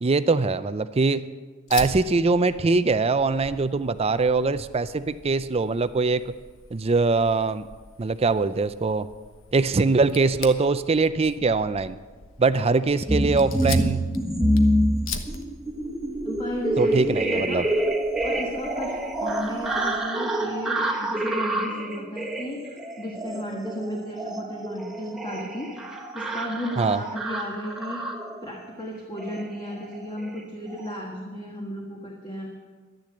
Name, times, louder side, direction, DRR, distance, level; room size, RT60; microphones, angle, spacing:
voice 1, 0.0-1.3 1.7-6.2 6.7-7.7 8.0-9.1 9.5-12.0 12.4-14.0 16.8-17.7 26.8-27.0, right 3 dB, 30° right, 13 dB, 0.5 m, -22 dB
Fire, 1.7-20.0, left 5 dB, 70° left, 1.2 m, -42 dB
sound 1, 13.1-28.5 29.2-29.5 29.7-30.0 30.2-30.4 30.7-30.9, right 1 dB, ahead, 1.4 m, -27 dB
voice 2, 16.2-17.6 18.2-28.0 28.4-32.6, left 1 dB, 25° left, -1 dB, 1.6 m, -34 dB
12.0 x 10.5 x 7.8 m, 1.4 s
head